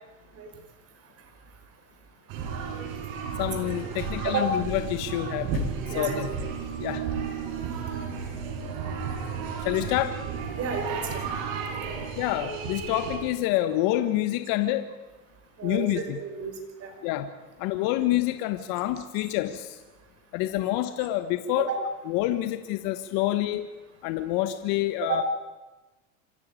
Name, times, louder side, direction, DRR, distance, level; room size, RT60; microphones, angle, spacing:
sound 1, 2.3-13.2, right 6 dB, 60° right, 6.5 m, -33 dB
voice 1, 3.4-6.3 6.8-7.0 9.6-10.2 12.2-14.9 15.6-16.2 17.0-17.3 17.6-19.8 20.3-21.7 22.1-23.7 24.0-25.2, left 14 dB, 55° left, 9 dB, 1.5 m, -27 dB
voice 2, 5.9-6.2 10.5-11.3 15.6-16.5 16.8-16.9 21.6-21.7 25.0-25.2, right 6 dB, 35° right, 4 dB, 5.4 m, -31 dB
26.0 x 14.5 x 9.8 m, 1.1 s
supercardioid pair, 130°, 41 cm